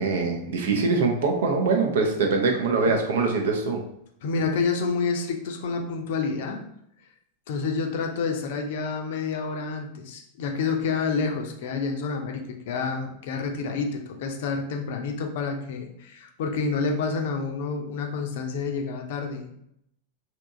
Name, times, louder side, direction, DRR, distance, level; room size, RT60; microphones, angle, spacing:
voice 1, 0.0-3.8, right 4 dB, 60° right, 3 dB, 0.6 m, -23 dB
voice 2, 4.2-6.6 7.5-19.5, left 4 dB, 55° left, 3 dB, 0.5 m, -28 dB
3.4 x 2.8 x 2.5 m, 0.74 s
figure-of-eight pair, 90°, 0 cm